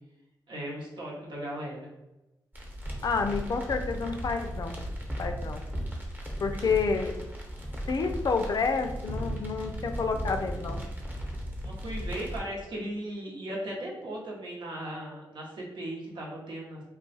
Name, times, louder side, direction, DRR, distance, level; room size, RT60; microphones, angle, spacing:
voice 1, 0.5-1.9 6.5-6.6 11.6-16.8, right 1 dB, 70° right, -3 dB, 1.0 m, -37 dB
sound 1, 2.5-12.4, equal, 25° right, 1.0 m, -36 dB
voice 2, 3.0-4.8 5.2-5.6 6.4-7.1 7.9-10.8, left 4 dB, 50° left, 6 dB, 0.4 m, -29 dB
2.3 x 2.3 x 4.0 m, 0.98 s
cardioid pair, 55°, 8 cm